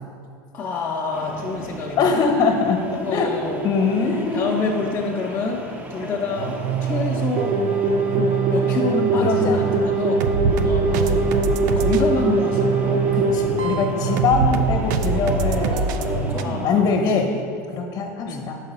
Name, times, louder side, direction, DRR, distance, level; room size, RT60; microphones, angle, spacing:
voice 1, 0.5-2.2 3.0-3.7 4.1-7.7 8.1-11.4 11.7-13.0 13.6-13.8 16.3-17.4 18.2-18.5, left 4 dB, 25° left, -3 dB, 0.6 m, -28 dB
sound 1, 1.1-16.7, right 1 dB, 15° right, 0.6 m, -36 dB
voice 2, 2.0-3.3 3.6-4.4 9.2-9.6 13.1-17.3 17.7-18.6, left 5 dB, 45° left, 4 dB, 1.0 m, -22 dB
sound 2, 6.3-16.4, right 5 dB, 80° right, 0.4 m, -24 dB
sound 3, 7.3-13.9 15.7-15.9, right 3 dB, 55° right, 0.8 m, -22 dB
5.4 x 4.8 x 5.4 m, 2.3 s
supercardioid pair, 125°, 10 cm